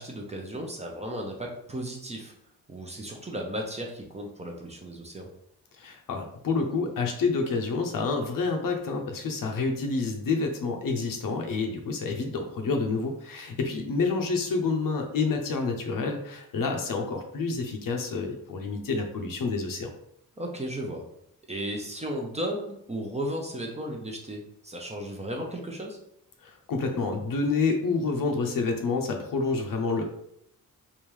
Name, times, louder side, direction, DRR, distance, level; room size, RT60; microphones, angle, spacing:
voice 1, 0.0-2.3 2.7-5.3 20.4-21.0 21.5-26.0, equal, 20° right, 1 dB, 0.7 m, -35 dB
voice 2, 5.8-19.9 26.4-30.0, left 4 dB, 65° left, 4 dB, 0.7 m, -28 dB
3.5 x 2.6 x 3.1 m, 0.74 s
cardioid pair, 80°, 36 cm